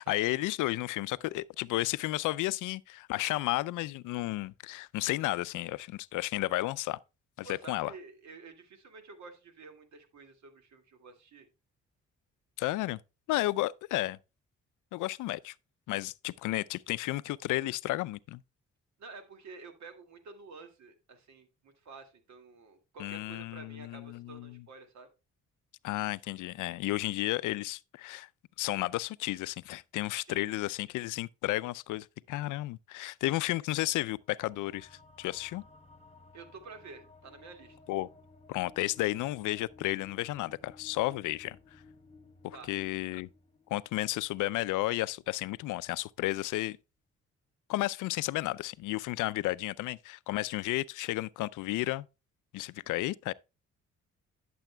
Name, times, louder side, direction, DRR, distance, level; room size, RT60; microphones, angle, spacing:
voice 1, 0.0-7.0 7.4-7.9 12.6-13.0 13.3-14.2 14.9-15.5 15.9-18.4 23.0-24.6 25.8-28.3 28.6-34.9 35.2-35.6 37.9-38.1 38.5-41.6 42.4-43.3 43.7-46.8 47.7-52.1 52.5-53.3, left 17 dB, 85° left, 0.5 m, -32 dB
voice 2, 7.4-11.5 19.0-25.1 30.3-30.6 36.3-37.8 42.5-42.7, right 4 dB, 65° right, 2.1 m, -50 dB
sound 1, 34.2-45.1, left 3 dB, 20° left, 1.3 m, -57 dB
12.0 x 7.0 x 2.2 m
cardioid pair, 90°, 30 cm